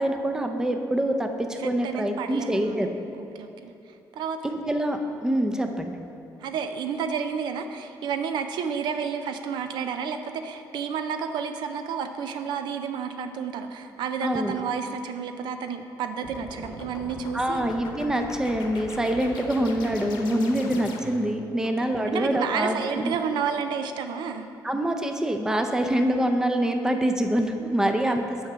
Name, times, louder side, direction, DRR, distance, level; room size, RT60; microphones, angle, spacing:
voice 1, 0.0-2.9 4.6-6.0 14.2-14.6 17.3-23.2 24.6-28.4, right 1 dB, 10° right, 5 dB, 0.5 m, -25 dB
voice 2, 1.6-2.8 3.2-3.7 4.1-4.5 6.4-17.7 20.4-20.5 21.6-21.7 22.1-24.5 27.8-28.2, right 6 dB, 80° right, 7 dB, 0.5 m, -31 dB
sound 1, 16.2-21.4, left 3 dB, 80° left, 0.9 m, -41 dB
6.5 x 4.8 x 6.7 m, 2.7 s
cardioid pair, 110°, 8 cm